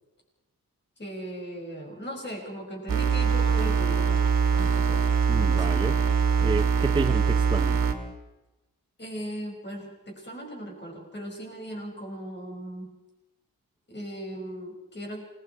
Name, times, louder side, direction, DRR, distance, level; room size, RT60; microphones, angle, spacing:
voice 1, 1.0-4.3 4.6-5.1 5.4-5.7 9.0-13.0 13.9-15.2, equal, 30° left, 0 dB, 5.9 m, -38 dB
sound 1, 2.9-7.9, right 6 dB, 65° right, 2.6 m, -23 dB
voice 2, 5.3-6.0 6.4-7.8, right 2 dB, 15° right, 8 dB, 0.6 m, -30 dB
28.0 x 20.5 x 4.6 m, 1.0 s
wide cardioid pair, 135°, 36 cm